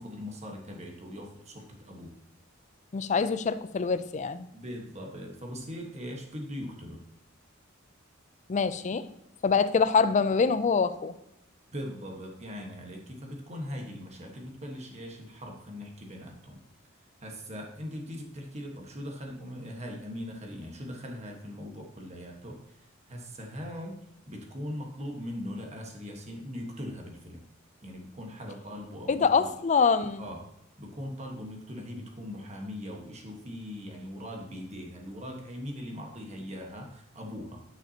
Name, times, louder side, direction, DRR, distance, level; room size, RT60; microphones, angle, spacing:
voice 1, 0.0-2.1 4.5-7.0 11.7-16.6 17.2-27.4 27.8-29.5 30.2-30.5 30.8-37.6, equal, 35° right, 1 dB, 1.4 m, -40 dB
voice 2, 2.9-4.5 8.5-9.1 9.4-11.1 29.1-30.3, left 5 dB, 35° left, 13 dB, 0.4 m, -25 dB
9.9 x 5.8 x 2.8 m, 0.85 s
head